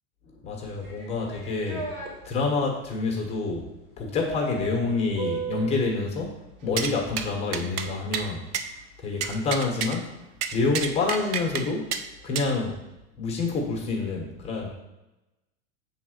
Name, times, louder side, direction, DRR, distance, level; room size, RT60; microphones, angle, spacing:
voice 1, 0.4-1.9 2.2-3.7 4.0-6.4 6.6-8.4 9.0-10.1 10.5-11.9 12.2-12.8 13.2-14.7, left 3 dB, 20° left, 0 dB, 1.3 m, -27 dB
sound 1, 0.8-2.1 4.3-5.9, right 4 dB, 40° right, 2.2 m, -35 dB
sound 2, 6.8-6.9 7.2-7.3 7.5-7.9 8.1-8.3 8.5-8.7 9.2-10.0 10.4-11.7 11.9-12.0 12.4-12.5, right 7 dB, 85° right, 0.8 m, -29 dB
7.5 x 4.0 x 6.5 m, 0.98 s
supercardioid pair, 175°, 34 cm